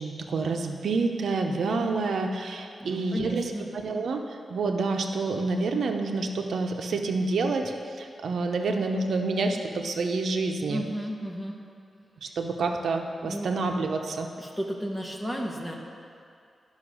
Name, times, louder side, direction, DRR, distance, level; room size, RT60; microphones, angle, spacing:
voice 1, 0.0-10.8 12.2-14.3, right 3 dB, 80° right, 4 dB, 0.8 m, -28 dB
voice 2, 2.8-3.7 10.7-11.6 13.2-13.5 14.4-15.7, equal, 5° left, 0 dB, 1.1 m, -33 dB
11.0 x 5.6 x 6.2 m, 2.4 s
wide cardioid pair, 145°, 0 cm